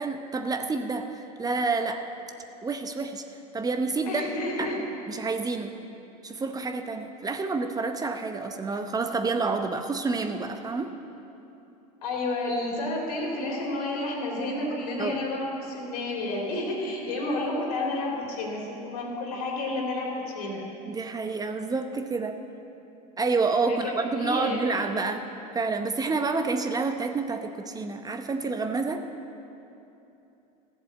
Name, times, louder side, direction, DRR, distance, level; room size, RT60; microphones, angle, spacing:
voice 1, 0.0-2.0 2.6-3.2 3.5-4.3 4.6-4.7 5.1-5.7 6.2-10.9 15.0-15.2 20.8-22.4 23.2-25.2 25.5-29.0, right 4 dB, 20° right, 6 dB, 0.8 m, -28 dB
voice 2, 4.1-4.8 12.0-20.6 23.7-24.6, left 2 dB, 75° left, -1 dB, 3.4 m, -30 dB
14.5 x 7.7 x 7.9 m, 2.9 s
hypercardioid pair, 100°, 20 cm